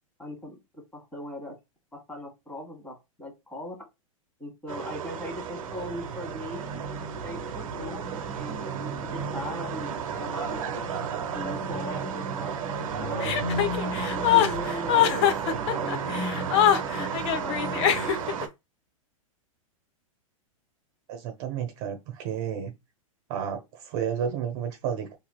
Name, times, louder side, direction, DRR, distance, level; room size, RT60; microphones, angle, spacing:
voice 1, 0.2-1.6 1.9-3.9 4.4-6.8 7.2-9.9 10.2-10.6 11.3-12.6 12.8-13.5 14.1-16.6 17.0-17.1 17.4-17.9, equal, 10° left, 1.6 m, -40 dB
sound 1, 4.7-18.5, right 5 dB, 75° right, 0.8 m, -32 dB
Chuckle chortle, 13.2-18.4, left 10 dB, 55° left, 0.7 m, -23 dB
voice 2, 21.1-22.7 23.3-25.2, right 8 dB, 50° right, 1.0 m, -31 dB
4.2 x 2.8 x 2.2 m
hypercardioid pair, 120°, 18 cm